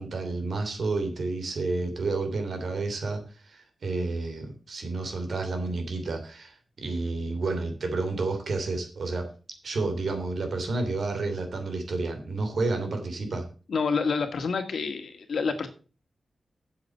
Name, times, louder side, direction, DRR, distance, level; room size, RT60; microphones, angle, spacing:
voice 1, 0.0-9.3 9.6-13.4, right 3 dB, 65° right, 5 dB, 3.0 m, -30 dB
voice 2, 13.7-15.7, left 5 dB, 75° left, 7 dB, 1.8 m, -28 dB
8.2 x 7.3 x 6.5 m, 0.36 s
wide cardioid pair, 110°, 0 cm